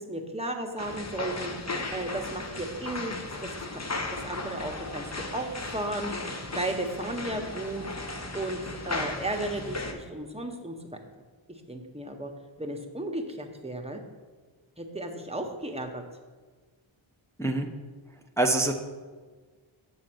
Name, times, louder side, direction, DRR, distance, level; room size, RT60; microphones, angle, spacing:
voice 1, 0.0-3.8 4.2-7.9 8.3-10.7 11.5-12.3 12.6-14.0 14.8-16.0, right 1 dB, 10° right, 3 dB, 0.9 m, -34 dB
sound 1, 0.8-9.9, left 2 dB, 30° left, 0.8 m, -36 dB
voice 2, 17.4-17.7 18.4-18.7, right 2 dB, 5° left, 3 dB, 0.5 m, -24 dB
7.6 x 3.9 x 6.1 m, 1.4 s
wide cardioid pair, 45°, 50 cm